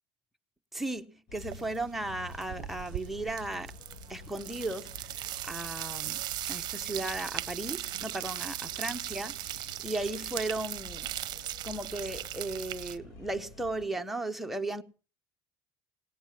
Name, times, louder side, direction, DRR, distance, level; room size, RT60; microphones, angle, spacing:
voice 1, 0.7-3.7 4.1-14.8, right 2 dB, ahead, 0.8 m, -36 dB
sound 1, 1.3-13.9, left 2 dB, 90° left, 7.7 m, -49 dB
sound 2, 1.4-1.8 2.0-13.0, right 14 dB, 50° right, 0.7 m, -38 dB
18.0 x 9.9 x 7.2 m
cardioid pair, 135°, 9 cm